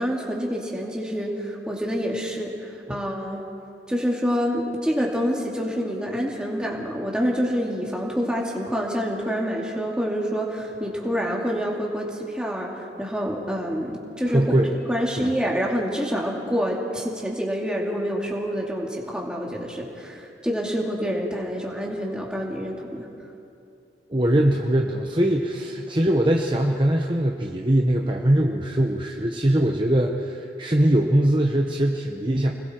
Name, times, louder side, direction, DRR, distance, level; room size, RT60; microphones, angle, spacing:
voice 1, 0.0-3.4 3.9-14.4 14.9-23.1, equal, 5° right, -2 dB, 2.6 m, -27 dB
voice 2, 14.3-14.7 15.2-15.3 24.1-32.5, right 1 dB, 30° right, 1 dB, 1.0 m, -21 dB
30.0 x 20.5 x 4.5 m, 2.7 s
head